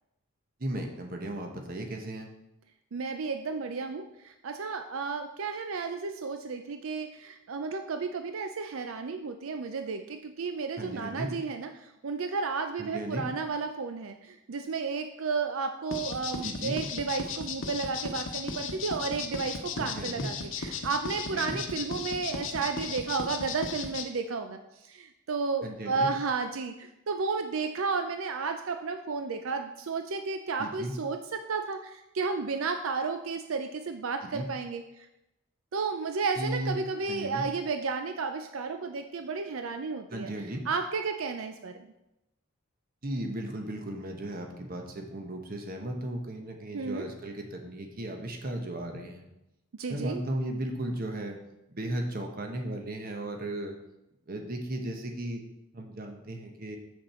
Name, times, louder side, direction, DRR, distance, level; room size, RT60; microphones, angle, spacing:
voice 1, 0.6-2.3 10.8-11.3 12.8-13.2 16.4-16.8 19.8-20.3 21.3-21.6 25.6-26.1 30.6-30.9 34.3-34.5 36.4-36.8 37.1-37.4 40.1-40.6 43.0-49.3 49.9-51.4 51.7-53.7 54.3-55.4 55.7-56.8, right 1 dB, 45° right, 3 dB, 1.1 m, -35 dB
voice 2, 2.9-35.1 35.7-41.9 46.7-47.1 49.7-50.2, right 4 dB, 85° right, 7 dB, 0.5 m, -33 dB
sound 1, 15.9-24.0, left 5 dB, 70° left, 0.9 m, -35 dB
7.2 x 6.4 x 4.3 m, 0.89 s
head